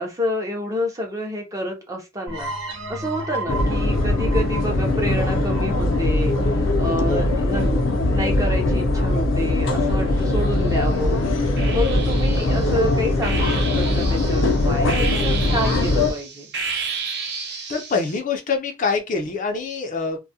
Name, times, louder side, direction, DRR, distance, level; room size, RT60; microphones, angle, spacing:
voice 1, 0.0-2.5 2.9-7.7 8.1-11.2 11.7-16.5, left 1 dB, 15° right, 0.6 m, -28 dB
sound 1, 2.3-7.7, right 2 dB, 85° right, 0.9 m, -33 dB
sound 2, 3.5-16.1, left 2 dB, 80° left, 0.6 m, -21 dB
sound 3, 10.2-10.9 11.6-18.2, right 5 dB, 60° right, 0.7 m, -32 dB
voice 2, 17.7-20.2, left 4 dB, 40° left, 0.4 m, -25 dB
2.3 x 2.1 x 2.6 m
head